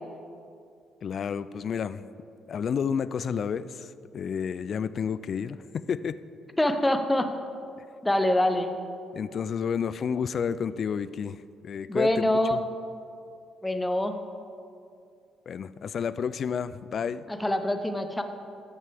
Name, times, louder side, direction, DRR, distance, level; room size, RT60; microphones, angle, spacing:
voice 1, 1.0-2.0 2.5-6.2 9.1-12.6 15.5-17.2, left 7 dB, 55° left, 15 dB, 0.3 m, -31 dB
voice 2, 6.6-7.3 8.0-8.8 11.9-12.6 13.6-14.1 17.4-18.2, left 1 dB, 10° left, 7 dB, 0.8 m, -24 dB
13.5 x 6.4 x 3.5 m, 2.4 s
supercardioid pair, 75°, 0 cm